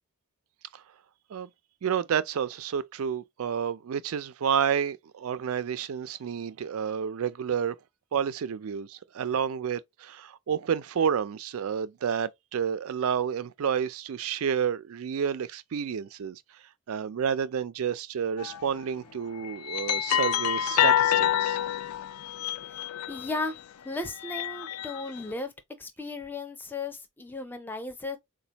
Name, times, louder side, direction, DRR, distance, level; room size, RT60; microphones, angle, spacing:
voice 1, 1.8-7.8 8.1-16.4 16.9-21.6, right 7 dB, 70° right, 0.4 m, -30 dB
sound 1, 18.4-18.7 19.4-23.5 24.1-25.2, left 11 dB, 75° left, 0.3 m, -27 dB
voice 2, 22.7-25.5 25.8-28.2, left 3 dB, 10° left, 0.5 m, -36 dB
4.1 x 2.2 x 2.8 m
head